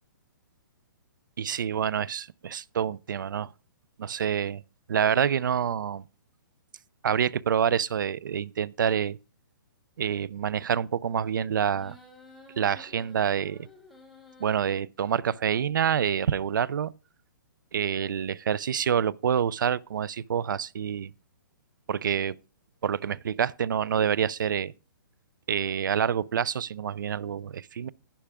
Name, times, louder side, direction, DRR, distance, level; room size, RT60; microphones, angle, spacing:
voice 1, 1.4-3.5 4.0-4.6 4.9-6.0 7.0-9.2 10.0-12.0 12.6-13.7 14.4-16.9 17.7-21.1 21.9-22.4 22.8-24.7 25.5-27.9, right 8 dB, 65° right, 0.5 m, -27 dB
sound 1, 11.7-14.7, left 2 dB, ahead, 1.5 m, -52 dB
11.5 x 10.0 x 3.6 m
hypercardioid pair, 175°, 11 cm